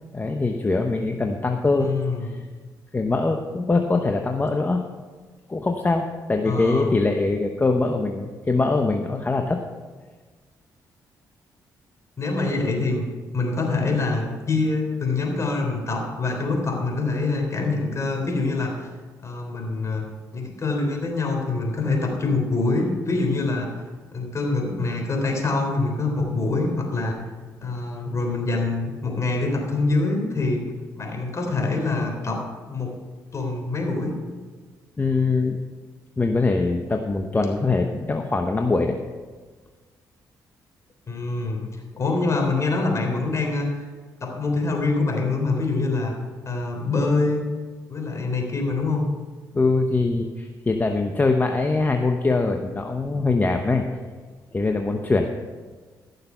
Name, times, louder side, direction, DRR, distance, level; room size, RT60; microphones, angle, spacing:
voice 1, 0.1-2.4 2.9-4.8 5.5-9.6 35.0-35.6 36.2-39.0 49.5-54.0 54.5-55.3, left 3 dB, 25° left, 4 dB, 1.0 m, -23 dB
voice 2, 1.8-2.3 6.4-6.9 12.2-13.0 13.3-18.9 19.2-20.1 20.3-23.7 24.1-27.1 27.6-30.6 30.9-32.4 32.7-32.9 33.3-34.1 41.1-41.6 42.0-43.9 44.2-46.1 46.5-47.5 47.9-49.0, left 3 dB, 45° left, 1 dB, 3.5 m, -25 dB
15.0 x 6.7 x 5.6 m, 1.4 s
cardioid pair, 70°, 7 cm